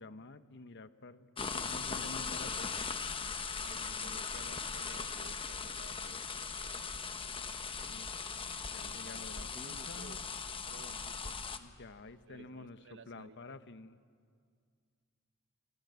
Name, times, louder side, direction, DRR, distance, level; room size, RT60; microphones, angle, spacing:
voice 1, 0.0-2.8 3.7-4.5 7.9-8.4 8.7-10.2 11.6-14.0, left 3 dB, 55° left, 11 dB, 1.0 m, -50 dB
sound 1, 1.4-11.6, left 5 dB, 25° left, 1.1 m, -39 dB
voice 2, 3.6-6.3 8.7-11.4 12.3-13.4, right 3 dB, 60° right, 10 dB, 1.1 m, -56 dB
27.0 x 24.0 x 8.1 m, 2.1 s
head